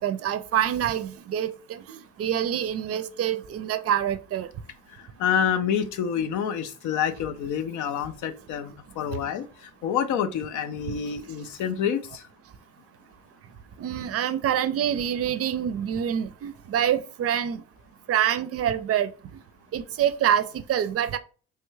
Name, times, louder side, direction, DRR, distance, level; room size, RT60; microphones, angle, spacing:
voice 1, 0.0-4.5 13.8-17.6 18.1-19.1 19.7-21.2, right 10 dB, 55° right, 0.4 m, -26 dB
voice 2, 5.2-9.5 9.8-12.2, left 8 dB, 85° left, 0.5 m, -27 dB
3.2 x 2.2 x 3.1 m
cardioid pair, 95°, 29 cm